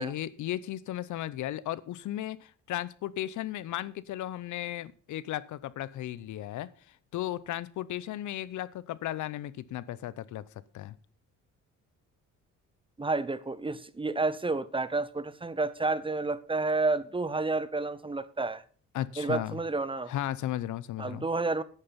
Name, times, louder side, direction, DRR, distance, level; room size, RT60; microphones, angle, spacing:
voice 1, 0.0-6.7 7.1-10.4 10.7-11.0 18.9-19.6 20.1-21.3, left 13 dB, 75° left, 19 dB, 0.8 m, -35 dB
voice 2, 13.0-18.6 19.2-20.1 21.0-21.6, right 3 dB, 15° right, 16 dB, 0.9 m, -30 dB
10.0 x 9.3 x 5.8 m, 0.42 s
cardioid pair, 90°, 30 cm